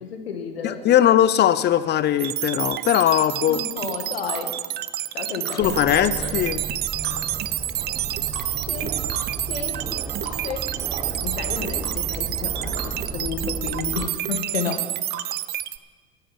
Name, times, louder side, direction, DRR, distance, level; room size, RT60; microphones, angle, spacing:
voice 1, 0.0-0.8 3.5-4.5 5.1-5.8 6.1-6.3 8.1-8.3 8.7-9.0 9.5-9.8 10.2-10.7 11.1-14.9 15.2-15.3, left 6 dB, 85° left, 6 dB, 1.7 m, -32 dB
voice 2, 0.6-3.6 5.5-6.6, left 11 dB, 35° left, 15 dB, 0.7 m, -20 dB
sound 1, 2.2-15.8, right 14 dB, 35° right, 0.5 m, -29 dB
sound 2, 4.3-4.4 5.4-5.6 7.0-7.2 8.3-8.5 9.1-9.3 10.2-10.4 10.9-11.1 11.8-11.9 12.8-12.9 13.9-14.1 15.1-15.3, right 4 dB, 85° right, 1.9 m, -37 dB
Aircraft, 5.6-14.1, right 3 dB, 10° right, 1.1 m, -34 dB
10.5 x 10.0 x 7.3 m, 1.4 s
hypercardioid pair, 90°, 30 cm